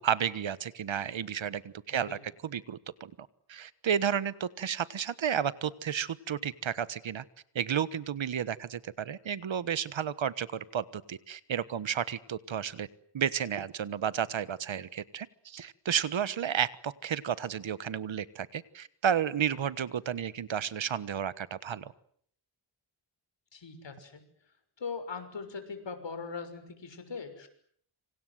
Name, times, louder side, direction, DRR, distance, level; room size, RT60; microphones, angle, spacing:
voice 1, 0.0-7.2 7.5-12.9 13.1-21.9, right 8 dB, 85° right, 17 dB, 1.4 m, -32 dB
voice 2, 23.5-24.2 24.8-27.5, left 5 dB, 70° left, 9 dB, 6.5 m, -40 dB
27.5 x 26.0 x 8.0 m, 0.64 s
wide cardioid pair, 90°, 45 cm